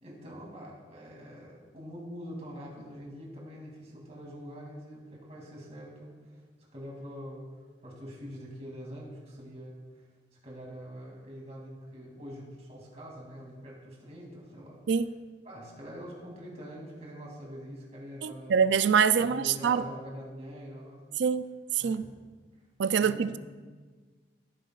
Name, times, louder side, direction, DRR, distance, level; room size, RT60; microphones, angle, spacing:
voice 1, 0.0-6.4 6.7-7.5 7.8-10.1 10.4-15.0 15.4-18.6 19.2-21.1 21.8-22.1 23.0-23.3, equal, 35° right, -3 dB, 2.7 m, -44 dB
voice 2, 18.2-19.8 21.2-21.4 21.8-22.0 22.8-23.4, right 6 dB, 70° right, 14 dB, 0.4 m, -24 dB
16.0 x 8.4 x 2.4 m, 1.4 s
head